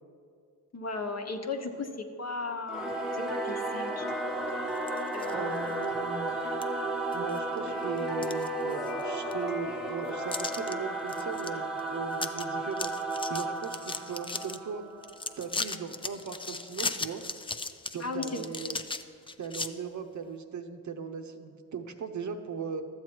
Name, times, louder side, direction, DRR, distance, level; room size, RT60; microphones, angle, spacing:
voice 1, 0.7-4.1 5.1-5.5 18.0-18.4, left 3 dB, 45° left, 5 dB, 1.1 m, -36 dB
Singing / Musical instrument, 2.7-15.6, right 1 dB, ahead, 0.9 m, -33 dB
sound 1, 4.8-5.3 5.8-5.9 6.6-6.7 7.1-7.6 8.0-9.0 9.3-9.4 10.3-10.7 11.1-11.5 11.8-11.9 12.1-12.4 12.7-14.6 15.0-19.7, left 3 dB, 15° left, 0.4 m, -36 dB
voice 2, 5.3-6.4 7.1-12.9 13.3-14.8 15.4-17.2 17.9-18.8 19.4-22.8, right 6 dB, 50° right, 6 dB, 0.8 m, -38 dB
12.5 x 7.8 x 4.5 m, 2.3 s
cardioid pair, 70°, 37 cm